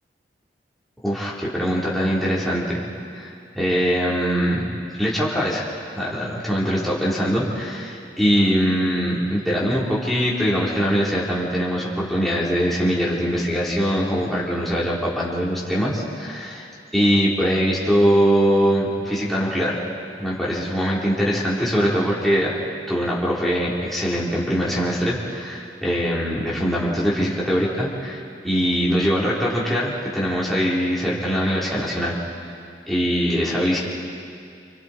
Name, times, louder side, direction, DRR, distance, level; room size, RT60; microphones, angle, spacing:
voice 1, 1.0-2.8 3.1-4.6 5.0-5.7 6.0-16.7 16.9-19.8 20.2-22.5 22.9-32.1 32.9-33.8, equal, ahead, -7 dB, 4.1 m, -22 dB
29.0 x 28.5 x 4.6 m, 2.4 s
head